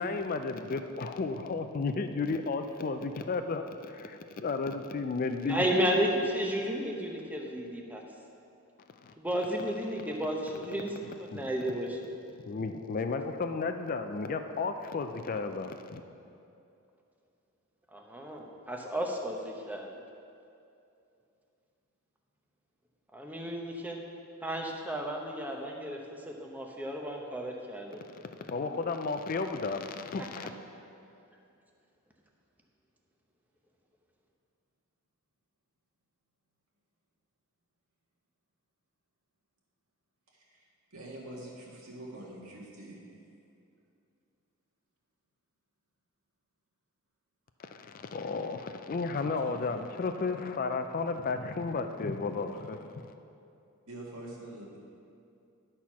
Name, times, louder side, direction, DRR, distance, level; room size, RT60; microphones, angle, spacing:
voice 1, 0.0-5.7 9.0-9.1 9.4-9.6 11.3-11.5 12.4-16.0 28.1-30.5 47.6-53.1, left 4 dB, 40° left, 7 dB, 0.4 m, -33 dB
voice 2, 5.4-8.0 9.2-12.0 17.9-19.9 23.1-24.0 24.4-28.0, equal, 5° right, 0 dB, 0.8 m, -33 dB
voice 3, 40.3-43.0 49.4-49.7 53.9-54.8, right 1 dB, 75° right, -4 dB, 1.9 m, -45 dB
11.5 x 4.3 x 6.0 m, 2.6 s
head